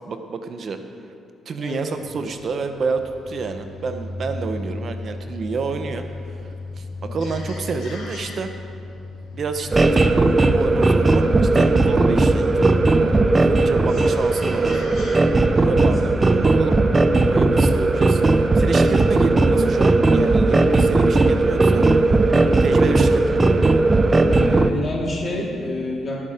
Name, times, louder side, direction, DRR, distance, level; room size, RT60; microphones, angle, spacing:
voice 1, 0.1-0.8 1.5-6.0 6.8-8.5 9.3-12.8 13.3-14.8 15.5-16.8 17.1-18.2 18.5-21.8 22.6-23.4, right 4 dB, 50° right, 7 dB, 0.9 m, -29 dB
sound 1, 1.9-16.2, left 2 dB, 75° left, 3.3 m, -35 dB
sound 2, 9.7-24.7, right 2 dB, 25° right, 0.7 m, -17 dB
voice 2, 24.3-26.2, left 1 dB, 40° left, -4 dB, 3.7 m, -28 dB
18.0 x 8.8 x 5.1 m, 2.5 s
cardioid pair, 90°, 0 cm